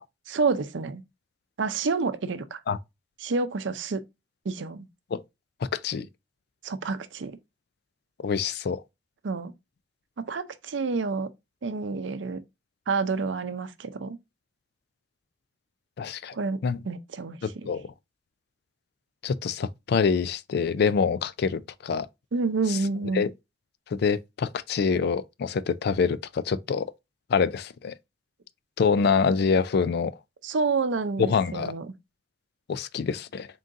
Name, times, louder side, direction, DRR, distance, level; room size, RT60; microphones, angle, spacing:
voice 1, 0.3-1.0 1.6-2.6 3.2-4.0 4.4-4.9 6.6-7.4 9.2-9.5 10.2-11.3 11.6-12.4 12.9-14.2 16.3-17.7 22.3-23.3 30.4-31.9, right 4 dB, 90° right, 0.5 m, -29 dB
voice 2, 5.7-6.1 8.2-8.8 16.0-16.3 16.6-16.8 17.4-17.9 19.2-22.1 22.7-22.8 23.1-23.3 23.9-26.9 27.3-27.9 28.8-30.1 31.2-31.7 32.7-33.5, left 5 dB, 60° left, 0.4 m, -25 dB
3.8 x 3.8 x 2.5 m
head